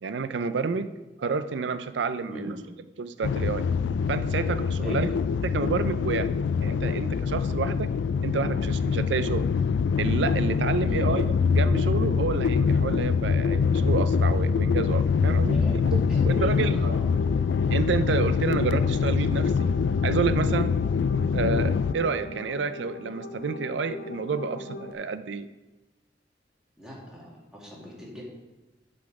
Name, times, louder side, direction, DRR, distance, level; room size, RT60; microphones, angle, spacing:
voice 1, 0.0-0.9 1.2-2.5 3.0-3.6 4.1-5.1 5.4-6.3 6.6-7.9 8.2-9.5 10.0-11.2 11.6-15.6 15.9-16.0 16.2-17.0 17.7-19.7 20.0-20.8 21.3-25.5, right 5 dB, 90° right, 13 dB, 0.5 m, -29 dB
voice 2, 2.3-2.7 4.8-5.1 10.9-11.3 15.5-15.8 16.1-17.2 26.8-28.2, equal, 5° right, -5 dB, 2.0 m, -40 dB
sound 1, 3.2-21.9, left 5 dB, 85° left, 0.3 m, -24 dB
sound 2, 15.6-24.9, left 1 dB, 60° left, 0.8 m, -40 dB
10.5 x 4.2 x 4.8 m, 1.1 s
head